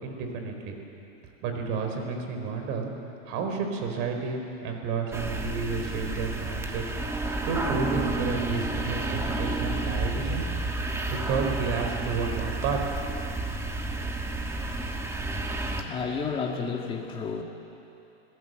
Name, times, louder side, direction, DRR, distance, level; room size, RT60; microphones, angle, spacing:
voice 1, 0.0-0.8 1.4-2.9 3.3-6.8 7.4-10.5 11.1-12.8, right 5 dB, 45° right, 3 dB, 4.2 m, -31 dB
sound 1, 5.1-15.8, right 2 dB, 10° right, 1.5 m, -31 dB
voice 2, 15.6-17.4, left 5 dB, 15° left, 1 dB, 1.8 m, -32 dB
27.0 x 17.0 x 7.9 m, 2.8 s
supercardioid pair, 150°, 31 cm